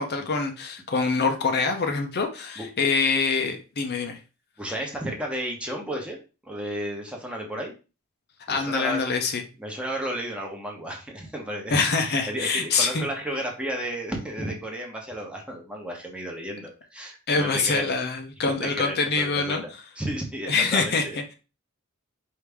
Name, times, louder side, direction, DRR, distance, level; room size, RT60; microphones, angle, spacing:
voice 1, 0.0-4.2 8.5-9.4 11.7-13.1 17.3-19.6 20.5-21.0, left 4 dB, 50° left, 5 dB, 0.6 m, -25 dB
voice 2, 4.6-6.2 6.4-7.7 8.5-9.0 9.6-11.8 12.0-17.9 18.4-19.6 20.0-21.2, right 1 dB, 5° right, 0 dB, 0.9 m, -33 dB
4.7 x 2.7 x 3.4 m, 0.32 s
head